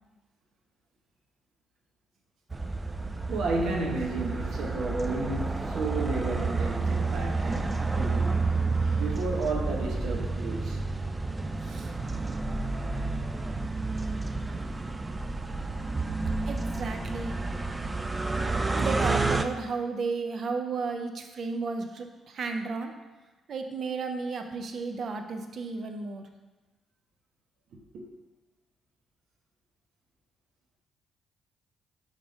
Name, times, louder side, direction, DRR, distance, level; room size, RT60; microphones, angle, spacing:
sound 1, 2.5-19.5, right 3 dB, 20° right, 0.4 m, -30 dB
voice 1, 3.3-10.8 27.9-28.1, right 2 dB, 75° right, 0 dB, 1.0 m, -33 dB
voice 2, 16.5-17.4 18.7-22.9 23.5-26.2, right 4 dB, 55° right, 6 dB, 0.7 m, -33 dB
5.3 x 3.7 x 5.1 m, 1.2 s
cardioid pair, 90°, 0 cm